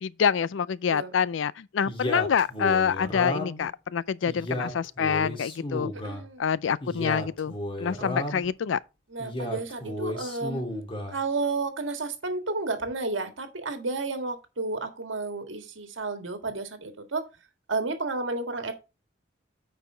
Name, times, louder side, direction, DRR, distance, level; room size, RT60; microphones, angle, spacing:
voice 1, 0.0-5.9 6.4-8.8, left 7 dB, 75° left, 0.4 m, -26 dB
Male speech man speaking, 1.8-3.7 4.2-6.2 6.8-8.5 9.2-11.2, left 1 dB, 30° left, 1.8 m, -33 dB
voice 2, 6.0-6.4 8.0-8.1 9.1-10.6 11.1-17.2 17.7-18.7, right 3 dB, 75° right, 1.7 m, -31 dB
9.1 x 4.8 x 4.4 m
head